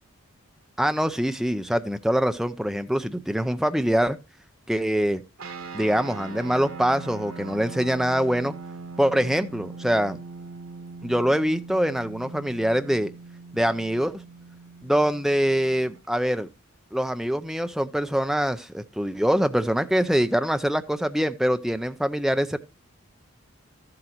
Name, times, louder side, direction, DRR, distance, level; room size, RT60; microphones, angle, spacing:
voice 1, 0.8-4.2 4.7-5.2 5.7-8.5 9.0-10.2 11.0-13.1 13.5-14.2 14.8-16.5 16.9-22.6, equal, ahead, 0.4 m, -24 dB
sound 1, 5.4-16.1, right 4 dB, 90° right, 1.4 m, -41 dB
13.0 x 7.7 x 2.9 m
head